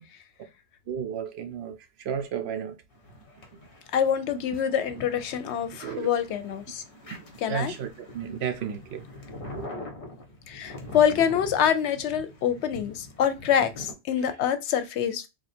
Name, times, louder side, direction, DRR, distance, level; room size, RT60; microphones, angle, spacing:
voice 1, 0.9-2.8 4.5-4.6 5.8-6.1 7.1-9.0 9.5-9.7 14.2-14.3, right 8 dB, 75° right, 0.9 m, -33 dB
sound 1, 2.9-13.9, left 1 dB, 55° left, 1.1 m, -44 dB
voice 2, 3.9-6.8 7.4-7.7 10.5-15.3, left 8 dB, 85° left, 0.9 m, -25 dB
3.1 x 2.4 x 4.2 m
omnidirectional pair, 1.1 m